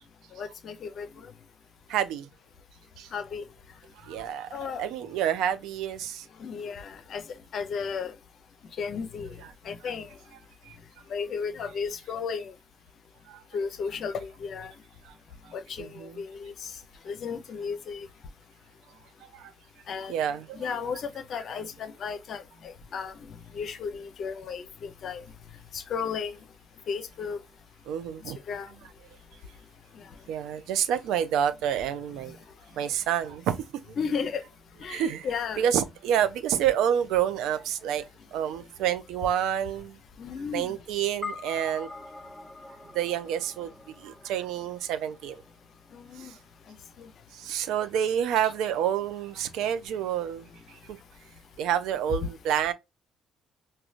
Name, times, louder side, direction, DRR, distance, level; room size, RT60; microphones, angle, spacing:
voice 1, 0.4-1.1 3.1-3.4 4.5-4.8 6.4-7.2 7.5-8.1 8.8-9.3 9.7-10.1 11.1-12.5 13.5-14.7 15.5-15.9 16.2-16.7 17.1-18.1 19.9-20.1 20.5-25.2 25.7-26.3 26.9-27.4 28.5-28.7 34.0-34.4 34.8-35.6 40.2-40.7 45.9-46.3 47.0-47.1, left 6 dB, 55° left, 0.6 m, -34 dB
voice 2, 1.9-2.3 3.0-3.1 4.0-4.5 4.8-6.3 9.8-9.9 10.6-10.7 13.3-13.4 15.0-15.1 15.4-16.2 19.3-19.5 20.1-20.9 27.9-28.4 30.3-32.4 32.7-34.0 34.9-35.3 35.6-40.0 40.5-41.9 42.9-43.7 44.0-45.4 46.2-46.4 47.3-51.0 51.6-52.7, right 9 dB, 70° right, 0.5 m, -29 dB
sound 1, 41.2-45.8, left 3 dB, ahead, 0.5 m, -43 dB
4.8 x 2.2 x 2.4 m
hypercardioid pair, 45°, 0 cm